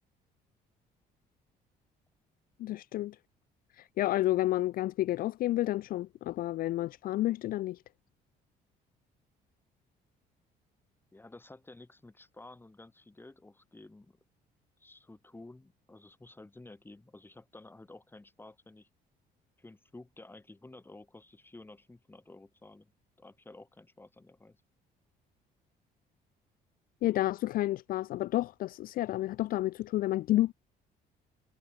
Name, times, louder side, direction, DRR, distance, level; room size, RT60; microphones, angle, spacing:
voice 1, 2.6-3.2 3.8-7.8 27.0-30.5, left 15 dB, 60° left, 0.4 m, -30 dB
voice 2, 11.1-14.2 14.8-18.9 19.6-22.9 23.2-24.6, left 2 dB, 10° left, 4.8 m, -52 dB
cardioid pair, 110°, 17 cm